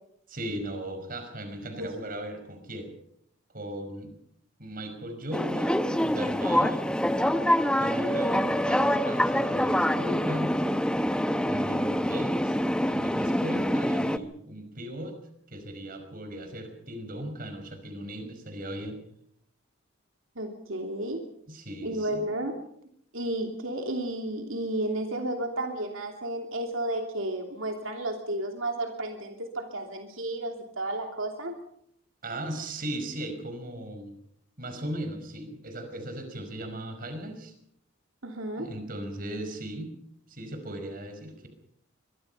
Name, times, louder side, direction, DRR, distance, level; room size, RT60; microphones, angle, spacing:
voice 1, 0.3-2.9 3.5-4.1 4.6-6.9 7.7-10.6 11.4-12.6 12.9-15.2 15.5-19.0 21.5-22.2 32.2-34.2 34.6-37.5 38.6-39.9 40.3-41.5, right 1 dB, 45° right, 7 dB, 5.3 m, -37 dB
sound 1, 5.3-14.2, equal, 5° left, 0.8 m, -25 dB
voice 2, 20.4-21.2 21.8-22.6 23.1-31.5 38.2-38.7, right 1 dB, 80° right, 3 dB, 2.9 m, -32 dB
24.0 x 23.0 x 5.6 m, 0.69 s
head